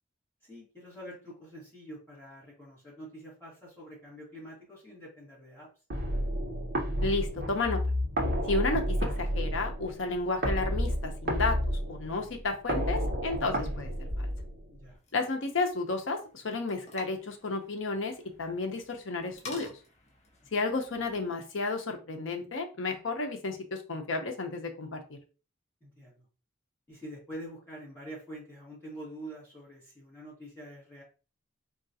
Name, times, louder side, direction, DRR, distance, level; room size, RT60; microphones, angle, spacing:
voice 1, 0.4-5.7 14.7-15.0 25.8-26.2 26.9-31.0, right 1 dB, 10° left, -7 dB, 1.4 m, -46 dB
sound 1, 5.9-14.9, equal, 45° right, 0.8 m, -31 dB
voice 2, 7.0-7.8 8.4-13.9 14.2-14.3 15.1-18.1 18.4-19.7 20.5-25.2, left 3 dB, 65° left, 4 dB, 0.7 m, -32 dB
sound 2, 14.9-21.3, left 2 dB, 30° left, 0.7 m, -50 dB
3.7 x 2.3 x 2.7 m, 0.34 s
head